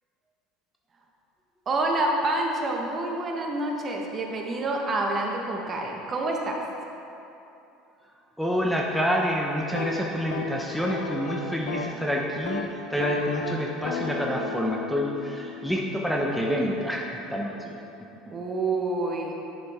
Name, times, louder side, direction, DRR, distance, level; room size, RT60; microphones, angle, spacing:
voice 1, 1.6-6.6 18.3-19.3, right 2 dB, 35° right, 0 dB, 1.3 m, -27 dB
voice 2, 8.4-12.6 12.9-17.8, equal, ahead, -1 dB, 0.9 m, -28 dB
sound 1, 9.6-12.0 12.3-12.7 13.0-16.8, left 5 dB, 75° left, 0.8 m, -34 dB
9.7 x 6.9 x 3.6 m, 2.9 s
hypercardioid pair, 80°, 0 cm